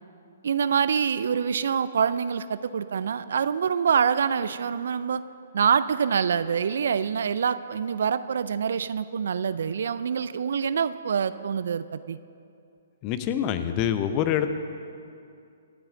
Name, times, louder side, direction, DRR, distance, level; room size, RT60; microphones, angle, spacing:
voice 1, 0.4-5.2 5.5-12.2, right 7 dB, 60° right, 15 dB, 0.4 m, -25 dB
voice 2, 13.0-14.5, left 10 dB, 30° left, 10 dB, 0.8 m, -25 dB
24.0 x 8.8 x 3.8 m, 2.5 s
figure-of-eight pair, 125°, 0 cm